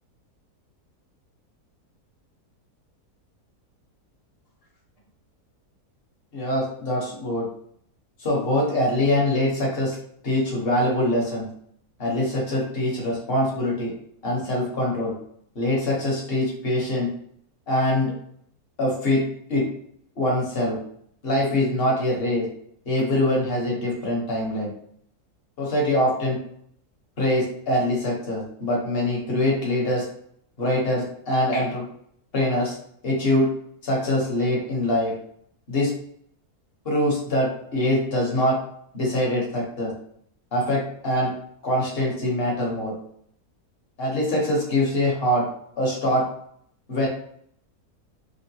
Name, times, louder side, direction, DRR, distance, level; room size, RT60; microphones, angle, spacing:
voice 1, 6.3-7.5 8.2-10.0 10.2-11.5 12.0-13.9 14.2-15.1 15.5-17.1 17.7-18.1 18.8-19.7 20.2-20.8 21.2-22.5 22.9-24.7 25.6-26.4 27.2-30.0 30.6-31.8 32.3-32.7 33.0-33.5 33.8-35.1 35.7-35.9 36.8-38.6 38.9-39.9 40.5-41.3 41.6-42.9 44.0-45.5 45.8-46.2 46.9-47.1, left 1 dB, 45° left, -3 dB, 1.0 m, -23 dB
3.6 x 2.2 x 2.7 m, 0.66 s
omnidirectional pair, 1.7 m